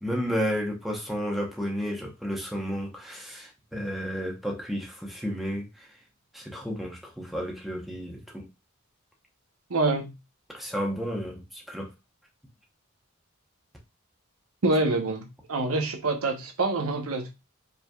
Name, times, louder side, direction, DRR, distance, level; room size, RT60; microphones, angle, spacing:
voice 1, 0.0-5.9 6.3-8.5 10.5-11.9, equal, ahead, -1 dB, 0.8 m, -32 dB
voice 2, 9.7-10.1 14.6-17.3, right 2 dB, 90° right, 4 dB, 0.8 m, -26 dB
5.0 x 3.2 x 2.3 m, 0.26 s
head